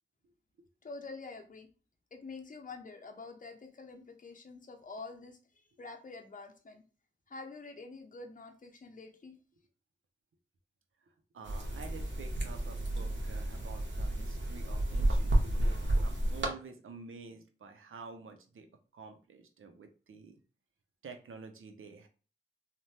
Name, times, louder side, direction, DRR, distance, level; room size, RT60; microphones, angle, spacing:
voice 1, 0.8-1.7 2.1-5.4 5.8-6.8 7.3-9.3, left 3 dB, 40° left, 4 dB, 0.6 m, -47 dB
voice 2, 11.3-18.7 18.9-20.4 21.0-22.1, right 4 dB, 80° right, 6 dB, 0.5 m, -49 dB
sound 1, 11.4-16.5, right 1 dB, 60° right, 0.8 m, -31 dB
3.1 x 2.1 x 2.7 m, 0.36 s
cardioid pair, 50°, 21 cm